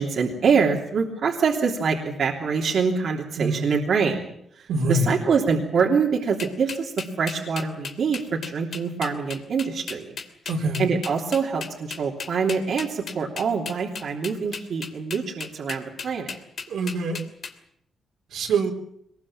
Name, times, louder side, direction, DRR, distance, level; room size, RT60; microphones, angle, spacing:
voice 1, 0.0-4.3 4.5-10.2 10.8-16.4, right 5 dB, 65° right, 0 dB, 3.2 m, -25 dB
voice 2, 3.4-3.7 4.7-5.1 10.5-10.9 16.7-17.2 18.3-18.7, right 2 dB, 85° right, 1 dB, 4.2 m, -24 dB
sound 1, 6.4-17.5, left 5 dB, 60° left, 2.9 m, -35 dB
23.0 x 20.5 x 7.5 m, 0.73 s
cardioid pair, 85°, 0 cm